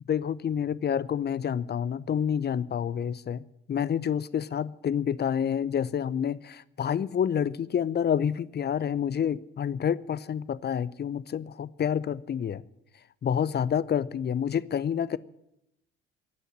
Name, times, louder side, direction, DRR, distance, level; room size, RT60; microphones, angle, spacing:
voice 1, 0.1-12.6 13.2-15.2, left 8 dB, 30° left, 0.7 m, -28 dB
15.0 x 9.2 x 9.7 m
figure-of-eight pair, 50°, 32 cm